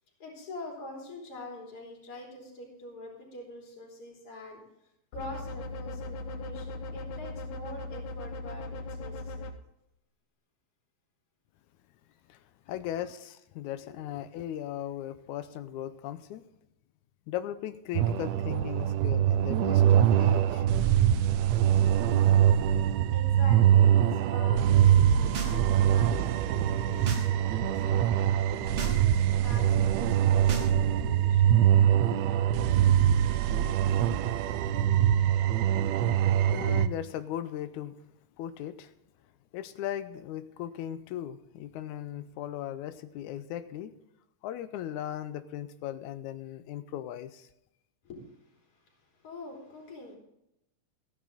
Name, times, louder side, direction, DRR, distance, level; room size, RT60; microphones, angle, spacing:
voice 1, 0.2-4.6 5.1-9.5 12.8-12.9 13.9-14.0 22.6-32.5 48.0-50.2, left 1 dB, 50° left, -2 dB, 4.2 m, -46 dB
sound 1, 5.1-9.5, left 2 dB, 75° left, 2.3 m, -38 dB
voice 2, 12.3-16.4 17.3-20.7 36.5-38.0 38.4-38.9 39.5-43.9 44.4-47.5, left 11 dB, 90° left, 11 dB, 2.0 m, -38 dB
sound 2, 17.9-36.9, right 10 dB, 75° right, 1.6 m, -23 dB
sound 3, 25.0-25.6 25.9-27.3 27.6-28.0 28.4-29.0 29.3-31.4, right 3 dB, 50° right, 2.0 m, -40 dB
14.5 x 10.5 x 3.9 m, 0.81 s
omnidirectional pair, 3.4 m